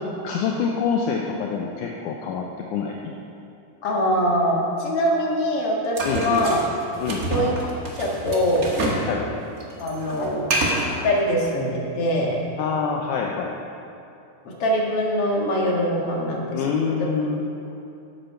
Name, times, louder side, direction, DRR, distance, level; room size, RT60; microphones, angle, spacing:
voice 1, 0.2-3.1 6.1-6.5 7.0-7.2 9.1-9.3 10.2-10.3 12.6-13.6 16.5-17.5, left 6 dB, 75° left, 0 dB, 2.0 m, -26 dB
voice 2, 3.8-6.6 7.3-7.5 8.0-8.8 9.8-10.6 11.0-12.3 14.5-16.6, equal, 45° left, -2 dB, 2.3 m, -23 dB
sound 1, 6.0-9.1 9.4-11.0, right 1 dB, 70° right, 0.8 m, -27 dB
13.5 x 8.6 x 5.8 m, 2.7 s
omnidirectional pair, 4.2 m